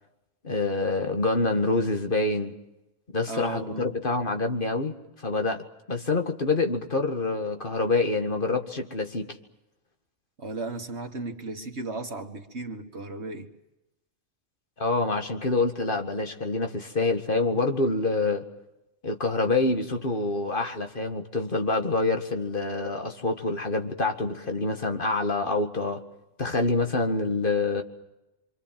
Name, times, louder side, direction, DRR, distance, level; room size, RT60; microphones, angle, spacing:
voice 1, 0.4-2.5 3.1-4.9 5.2-5.6 5.9-9.4 14.8-18.4 19.0-26.0 26.4-27.8, left 3 dB, 45° left, 2.1 m, -26 dB
voice 2, 3.3-3.9 10.4-13.5 26.9-27.0, right 3 dB, 65° right, 2.3 m, -35 dB
26.5 x 24.5 x 7.6 m
omnidirectional pair, 1.2 m